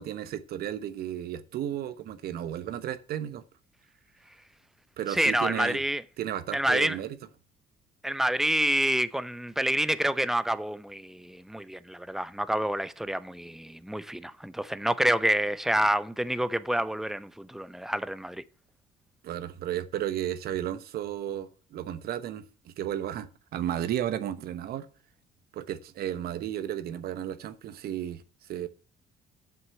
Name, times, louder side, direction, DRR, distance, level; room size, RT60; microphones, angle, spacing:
voice 1, 0.0-3.4 5.0-5.8 6.2-7.2 19.2-24.9 25.5-28.2 28.5-28.7, right 11 dB, 65° right, 1.1 m, -33 dB
voice 2, 5.1-6.0 6.5-7.0 8.0-18.4, right 1 dB, ahead, 0.6 m, -28 dB
7.9 x 6.1 x 7.6 m
cardioid pair, 110°, 17 cm